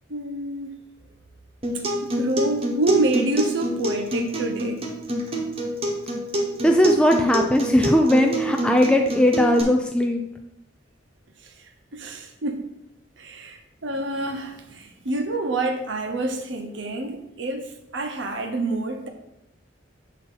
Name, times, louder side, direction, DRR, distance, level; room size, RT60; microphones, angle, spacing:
voice 1, 0.1-0.8 2.0-4.8 11.4-11.5 11.9-12.7 13.2-19.1, right 2 dB, 70° right, 4 dB, 1.0 m, -27 dB
Acoustic guitar, 1.6-9.6, equal, 30° right, 1.1 m, -27 dB
voice 2, 6.6-10.2, left 1 dB, 5° left, 3 dB, 0.4 m, -18 dB
8.4 x 2.9 x 5.6 m, 0.85 s
head